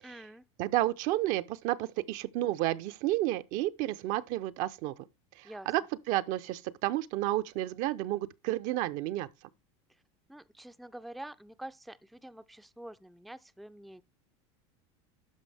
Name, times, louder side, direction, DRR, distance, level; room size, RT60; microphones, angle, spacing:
voice 1, 0.0-0.4 5.4-5.7 10.3-14.0, right 1 dB, ahead, 0.4 m, -47 dB
voice 2, 0.6-4.9 5.4-9.3, right 15 dB, 60° right, 0.7 m, -31 dB
12.0 x 5.2 x 3.4 m
supercardioid pair, 100°, 15 cm